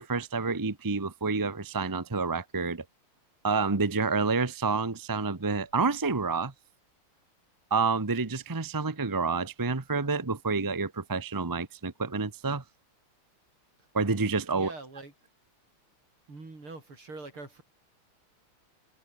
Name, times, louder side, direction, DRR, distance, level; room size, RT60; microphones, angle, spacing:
voice 1, 0.0-2.8 3.4-6.5 7.7-12.6 13.9-14.7, right 4 dB, 15° right, 0.7 m, -28 dB
voice 2, 14.5-15.1 16.3-17.6, right 3 dB, 80° right, 7.1 m, -43 dB
open air
omnidirectional pair, 2.3 m